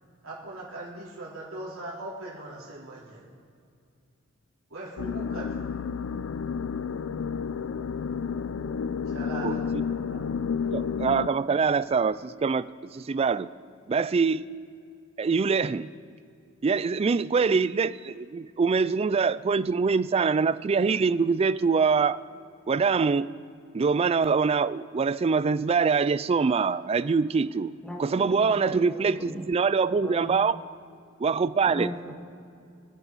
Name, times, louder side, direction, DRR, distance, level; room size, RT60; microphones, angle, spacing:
voice 1, 0.2-3.2 4.7-5.7 9.1-9.8 10.1-11.0, right 2 dB, 80° right, -5 dB, 3.9 m, -40 dB
sound 1, 5.0-11.3, left 6 dB, 70° left, 0.4 m, -31 dB
voice 2, 10.7-13.5 13.9-14.5 15.2-15.9 16.6-22.2 22.7-23.3 23.7-27.7 28.0-30.6 31.2-31.9, right 5 dB, 30° right, 16 dB, 0.3 m, -24 dB
voice 3, 27.8-29.5 30.0-30.4 31.6-32.1, equal, 5° left, -1 dB, 1.9 m, -38 dB
25.0 x 9.1 x 4.1 m, 2.4 s
head